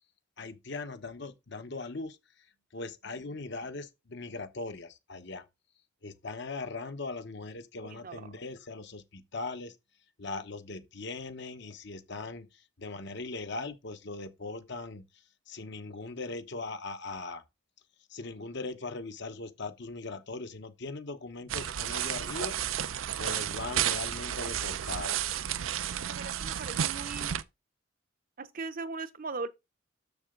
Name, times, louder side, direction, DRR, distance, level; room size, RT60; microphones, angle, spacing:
voice 1, 0.4-2.5 2.7-5.4 6.0-9.8 10.2-17.4 18.1-22.6 23.2-25.3, left 3 dB, 60° left, 1.0 m, -40 dB
voice 2, 7.8-8.3 26.1-27.3 28.4-29.5, right 4 dB, 45° right, 0.7 m, -39 dB
sound 1, 21.5-27.4, right 10 dB, 90° right, 0.5 m, -32 dB
7.0 x 6.9 x 3.7 m
head